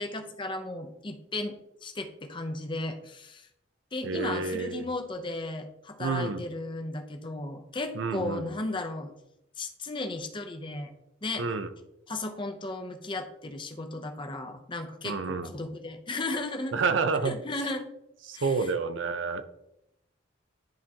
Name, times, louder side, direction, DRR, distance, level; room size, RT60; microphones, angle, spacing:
voice 1, 0.0-1.6 1.8-3.5 3.9-9.1 9.6-10.9 11.2-11.5 12.1-16.7 17.2-17.8 18.3-18.7, left 2 dB, 25° left, 5 dB, 0.6 m, -35 dB
voice 2, 4.0-4.9 6.0-6.5 7.9-8.5 11.4-11.7 15.0-15.6 16.7-17.8 18.2-19.4, right 4 dB, 75° right, 11 dB, 0.5 m, -29 dB
10.5 x 3.7 x 2.8 m, 0.85 s
head